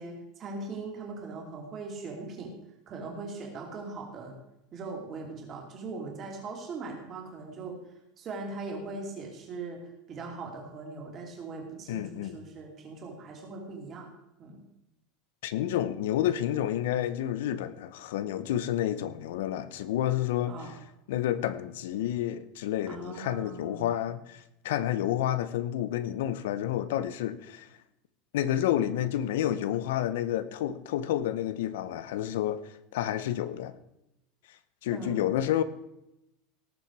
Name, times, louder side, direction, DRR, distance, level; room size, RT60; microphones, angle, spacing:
voice 1, 0.0-2.5 2.9-4.3 4.7-7.8 8.2-14.1 14.4-14.6 20.5-20.7 22.9-24.0 34.9-35.2, right 3 dB, 25° right, 2.9 m, -40 dB
voice 2, 11.9-12.4 15.4-20.8 21.1-27.7 28.3-33.7 34.8-35.6, left 11 dB, 85° left, 0.9 m, -30 dB
18.5 x 7.2 x 4.8 m
supercardioid pair, 180°, 0 cm